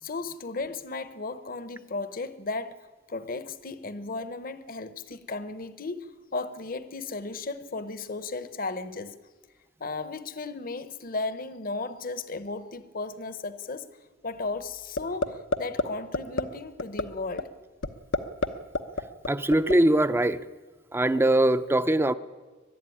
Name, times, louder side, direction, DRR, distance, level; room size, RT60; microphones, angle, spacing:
voice 1, 0.0-9.2 9.8-13.9 14.2-17.5, left 3 dB, 50° left, 1.0 m, -35 dB
sound 1, 15.0-15.3 15.5-15.8 16.1-16.4 16.8-17.0 17.4-17.5 17.8-18.5 18.7-19.7, left 3 dB, 80° left, 1.0 m, -25 dB
voice 2, 19.3-20.4 20.9-22.1, right 1 dB, 10° right, 0.6 m, -22 dB
22.0 x 12.0 x 9.9 m
head